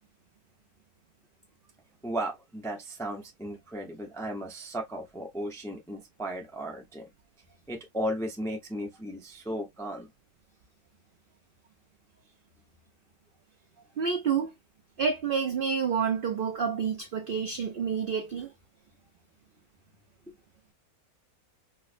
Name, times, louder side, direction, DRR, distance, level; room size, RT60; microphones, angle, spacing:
voice 1, 2.0-7.1 7.7-10.1, right 1 dB, 5° left, 0.3 m, -35 dB
voice 2, 14.0-14.5 15.0-18.5, right 6 dB, 75° right, 0.5 m, -28 dB
4.6 x 2.1 x 2.5 m
omnidirectional pair, 1.6 m